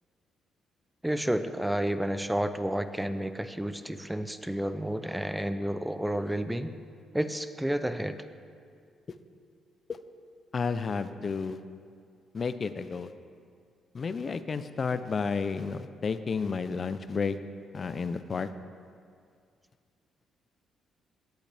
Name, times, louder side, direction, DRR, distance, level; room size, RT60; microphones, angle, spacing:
voice 1, 1.0-6.7 7.1-8.2, right 1 dB, 5° right, 10 dB, 0.5 m, -30 dB
voice 2, 10.5-11.6 12.3-13.1 13.9-17.4 17.7-18.5, left 5 dB, 40° left, 12 dB, 0.5 m, -31 dB
18.0 x 8.0 x 3.4 m, 2.2 s
cardioid pair, 90°, 0 cm